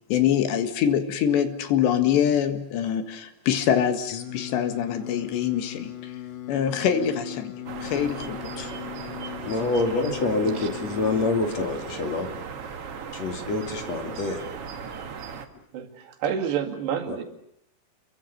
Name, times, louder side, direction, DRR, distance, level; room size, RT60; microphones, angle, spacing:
voice 1, 0.1-6.1 6.5-7.5 7.8-8.7, left 9 dB, 90° left, 8 dB, 4.0 m, -24 dB
Singing, 4.1-11.3, left 11 dB, 60° left, 2.4 m, -38 dB
sound 1, 7.7-15.5, right 6 dB, 55° right, 1.7 m, -37 dB
voice 2, 9.4-12.3 13.1-14.4 17.1-17.2, left 3 dB, 45° left, 4 dB, 3.4 m, -26 dB
voice 3, 15.7-17.2, right 8 dB, 80° right, 3 dB, 4.4 m, -29 dB
29.0 x 23.0 x 6.9 m, 0.74 s
omnidirectional pair, 4.9 m